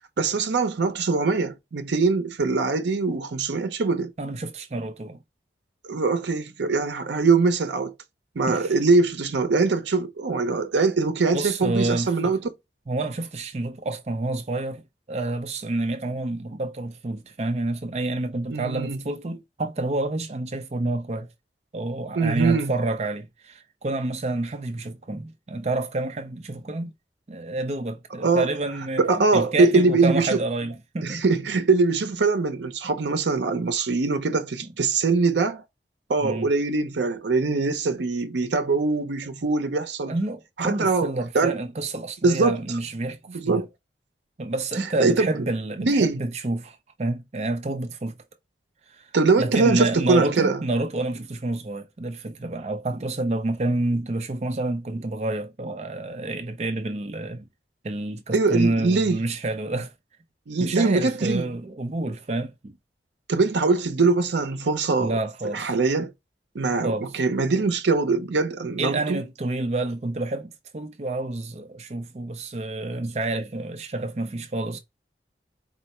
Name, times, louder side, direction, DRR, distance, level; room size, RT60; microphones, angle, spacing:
voice 1, 0.2-4.1 5.8-7.9 8.4-12.4 18.5-19.0 22.1-22.7 28.2-28.6 29.0-30.4 31.0-35.6 36.1-40.2 40.6-41.6 42.2-42.6 43.3-43.7 45.0-45.3 45.8-46.3 49.1-50.6 58.3-59.2 60.5-61.5 63.3-65.2 65.5-66.1 66.5-69.2, right 3 dB, 85° right, 0.6 m, -22 dB
voice 2, 4.2-5.2 8.5-8.7 11.3-12.3 12.9-14.8 15.1-21.3 21.7-26.9 27.3-31.2 36.2-36.5 40.1-43.2 43.4-43.6 44.4-48.2 49.0-49.1 49.4-57.4 57.8-59.9 60.6-62.8 65.0-65.7 66.8-67.1 68.8-74.8, right 2 dB, 40° right, 0.5 m, -28 dB
4.4 x 2.1 x 4.1 m
head